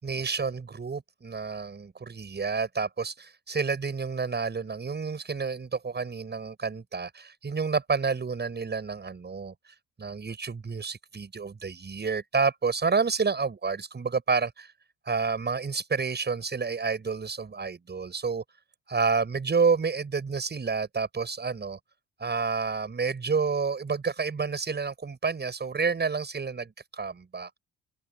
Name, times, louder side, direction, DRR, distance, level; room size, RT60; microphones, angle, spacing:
voice 1, 0.0-14.7 15.1-18.4 18.9-21.8 22.2-27.6, right 5 dB, 35° right, 7.2 m, -29 dB
open air
cardioid pair, 90°, 30 cm